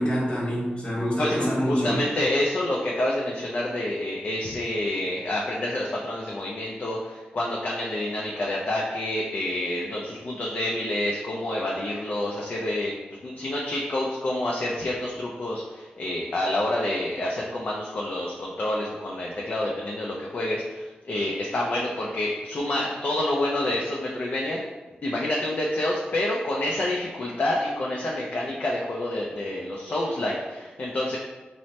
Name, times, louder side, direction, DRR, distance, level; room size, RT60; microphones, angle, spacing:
voice 1, 0.0-2.0, equal, 30° left, -6 dB, 1.2 m, -26 dB
voice 2, 1.2-12.9 13.2-24.6 25.0-31.2, left 1 dB, 45° left, -3 dB, 0.4 m, -28 dB
3.1 x 2.0 x 2.7 m, 1.2 s
wide cardioid pair, 85°, 4 cm